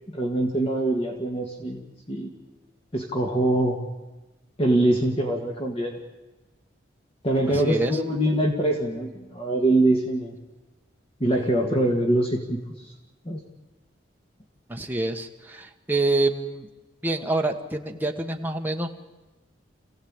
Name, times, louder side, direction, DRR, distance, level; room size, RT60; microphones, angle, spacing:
voice 1, 0.1-2.3 2.9-3.8 4.6-6.0 7.2-10.3 11.2-12.9 13.3-13.4, right 1 dB, 30° left, 1 dB, 1.9 m, -24 dB
voice 2, 7.5-8.0 14.7-16.7 17.0-19.0, right 2 dB, 10° right, 2 dB, 1.4 m, -27 dB
27.5 x 16.5 x 8.9 m, 1.1 s
head